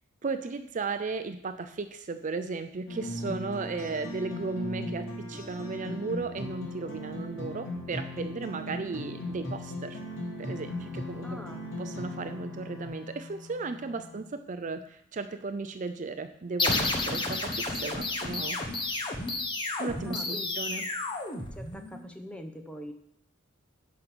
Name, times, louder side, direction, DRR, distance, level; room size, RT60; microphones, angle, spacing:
voice 1, 0.2-10.0 10.4-11.4 11.8-18.6 19.8-20.8, right 4 dB, 40° right, 9 dB, 0.5 m, -35 dB
sound 1, 2.9-12.9, left 1 dB, 80° left, 3.0 m, -38 dB
Bowed string instrument, 10.1-14.4, left 4 dB, 10° right, 2.2 m, -46 dB
voice 2, 11.2-11.8 20.0-20.6 21.5-22.9, equal, 5° left, 5 dB, 0.9 m, -43 dB
sound 2, 16.6-22.0, left 2 dB, 25° left, 1.2 m, -31 dB
11.5 x 5.2 x 6.1 m, 0.73 s
head